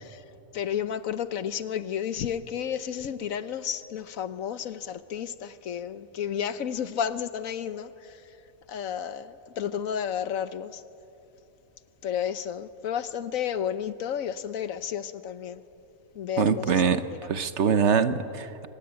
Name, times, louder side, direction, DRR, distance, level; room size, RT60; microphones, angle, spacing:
voice 1, 0.5-8.2 8.7-10.8 12.0-15.6 16.1-16.8 17.1-17.2, left 8 dB, 75° left, 1.3 m, -32 dB
voice 2, 16.4-18.7, right 6 dB, 60° right, 1.2 m, -24 dB
25.0 x 20.0 x 9.0 m
omnidirectional pair, 1.4 m